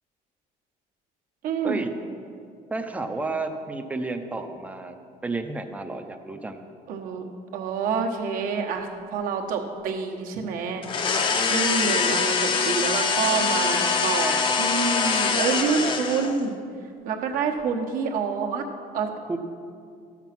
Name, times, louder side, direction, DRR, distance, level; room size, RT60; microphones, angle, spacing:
voice 1, 1.4-1.8 6.9-7.2 7.5-10.9 11.5-16.6 17.0-18.6 18.9-19.1, right 5 dB, 60° right, 2 dB, 1.2 m, -27 dB
voice 2, 2.7-6.6 19.3-19.4, right 3 dB, 10° right, 7 dB, 0.6 m, -31 dB
sound 1, 10.8-16.4, left 5 dB, 30° left, 0.7 m, -24 dB
13.0 x 7.3 x 5.9 m, 2.4 s
cardioid pair, 165°, 16 cm